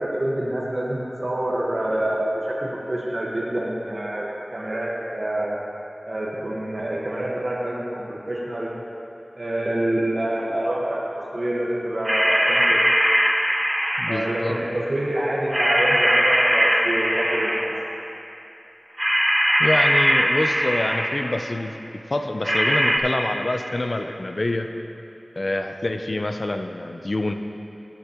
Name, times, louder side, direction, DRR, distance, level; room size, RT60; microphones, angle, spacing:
voice 1, 0.0-5.6 6.1-8.7 9.3-11.0 11.3-12.8 14.1-17.7, right 1 dB, 60° right, -4 dB, 1.4 m, -26 dB
sound 1, 12.1-14.5 15.5-17.9 19.0-21.4 22.4-23.0, equal, 15° right, 0.8 m, -21 dB
voice 2, 14.0-14.6 19.6-21.8 22.1-24.7 25.4-27.3, left 2 dB, 60° left, 6 dB, 0.6 m, -26 dB
14.5 x 8.4 x 3.0 m, 3.0 s
wide cardioid pair, 50°, 0 cm